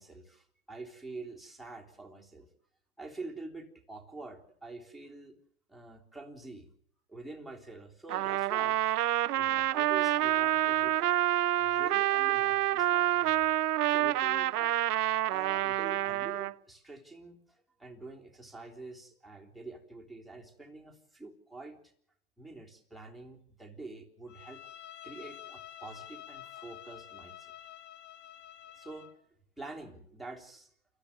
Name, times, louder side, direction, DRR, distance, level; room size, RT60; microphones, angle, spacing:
voice 1, 0.0-2.5 3.0-5.4 5.7-6.7 7.1-9.0 9.3-13.5 13.9-14.8 15.3-21.8 22.4-24.6 25.0-27.5 28.7-29.1 29.6-30.7, right 3 dB, ahead, 0 dB, 3.6 m, -46 dB
Trumpet, 8.1-16.5, right 14 dB, 75° right, 0.8 m, -28 dB
Bowed string instrument, 24.3-29.2, left 11 dB, 25° left, 1.3 m, -49 dB
28.5 x 14.0 x 6.8 m, 0.66 s
hypercardioid pair, 135°, 46 cm